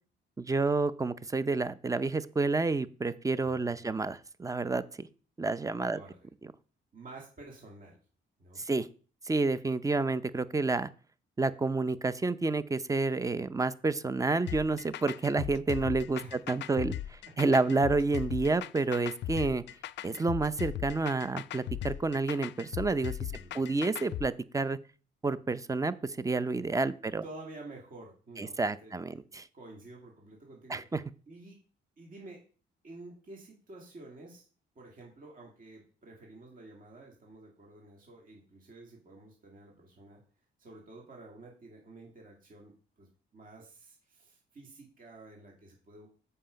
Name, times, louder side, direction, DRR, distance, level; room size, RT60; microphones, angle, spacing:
voice 1, 0.4-5.1 5.4-6.0 8.7-8.9 9.3-10.9 11.4-16.2 16.5-16.9 17.4-19.6 20.0-23.1 23.5-24.8 25.2-27.2 28.4-29.4 30.7-31.0, right 3 dB, 15° right, 15 dB, 0.5 m, -29 dB
voice 2, 3.5-3.9 5.9-6.3 6.9-8.0 8.4-8.6 16.2-16.4 17.3-17.4 23.3-23.7 27.0-28.6 28.8-29.2 29.5-31.0 31.3-31.6 32.0-32.4 32.8-34.4 34.8-40.2 40.6-43.1 43.3-46.1, right 2 dB, 45° right, -1 dB, 2.4 m, -50 dB
sound 1, 14.5-24.3, left 13 dB, 65° left, 0.4 m, -38 dB
7.6 x 5.5 x 5.1 m, 0.39 s
cardioid pair, 90°, 20 cm